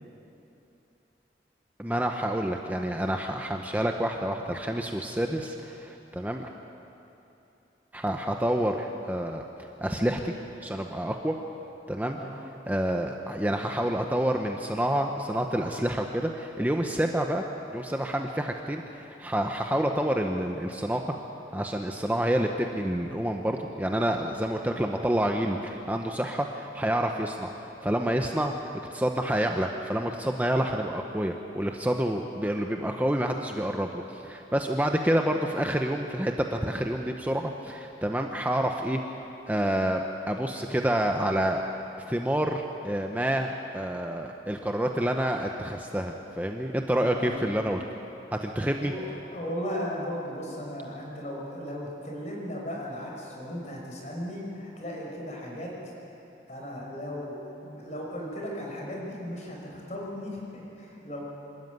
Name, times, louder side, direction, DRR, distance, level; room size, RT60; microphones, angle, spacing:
voice 1, 1.8-6.5 7.9-9.4 9.8-10.3 10.6-11.4 11.9-12.2 12.7-17.4 17.7-21.1 21.5-39.0 39.5-41.6 42.1-47.8 48.3-48.9, right 1 dB, 10° right, 3 dB, 0.8 m, -28 dB
voice 2, 47.0-47.5 48.8-55.8 56.5-61.2, equal, 40° left, -2 dB, 5.4 m, -36 dB
25.5 x 13.0 x 9.4 m, 2.9 s
head